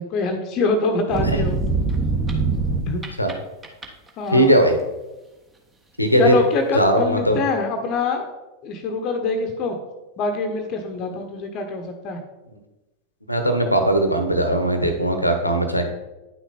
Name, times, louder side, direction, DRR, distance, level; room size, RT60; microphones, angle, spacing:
voice 1, 0.0-1.6 2.8-3.0 4.2-4.5 6.2-8.3 8.6-9.7 10.2-12.2, left 3 dB, 35° left, 5 dB, 1.0 m, -24 dB
sound 1, 1.1-3.3 3.6-4.1, right 4 dB, 15° right, 1.3 m, -23 dB
voice 2, 4.3-4.8 6.0-6.3 6.7-7.4 13.3-15.9, right 1 dB, 85° left, 7 dB, 1.1 m, -19 dB
9.6 x 6.1 x 4.2 m, 1.0 s
figure-of-eight pair, 90°, 0 cm